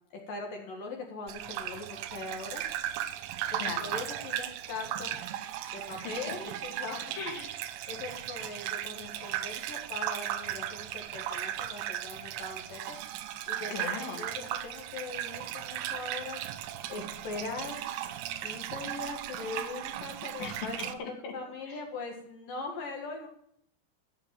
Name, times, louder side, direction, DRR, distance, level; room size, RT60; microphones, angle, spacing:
voice 1, 0.3-2.6 3.5-5.2 5.7-7.1 7.9-13.0 13.5-16.4 16.9-17.8 18.4-21.0 21.3-23.3, left 3 dB, 60° left, 1 dB, 3.0 m, -41 dB
Gurgling / Bathtub (filling or washing), 1.3-20.9, right 12 dB, 85° right, 3.1 m, -37 dB
voice 2, 3.6-3.9 5.9-6.0 7.2-7.6 13.7-14.2 20.4-20.5 21.0-21.3 21.7-21.8, left 5 dB, 80° left, 2 dB, 4.4 m, -38 dB
14.0 x 8.8 x 7.6 m, 0.70 s
omnidirectional pair, 5.0 m